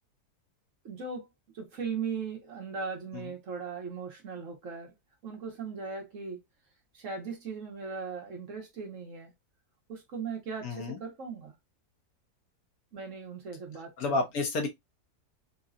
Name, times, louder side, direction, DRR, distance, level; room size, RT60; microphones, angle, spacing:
voice 1, 0.8-1.3 1.5-4.9 5.2-6.4 6.9-9.3 9.9-11.5 12.9-14.2, right 5 dB, 55° right, 1.1 m, -38 dB
voice 2, 10.6-11.0 14.0-14.7, left 3 dB, 65° left, 1.3 m, -30 dB
3.8 x 2.2 x 2.5 m
omnidirectional pair, 1.7 m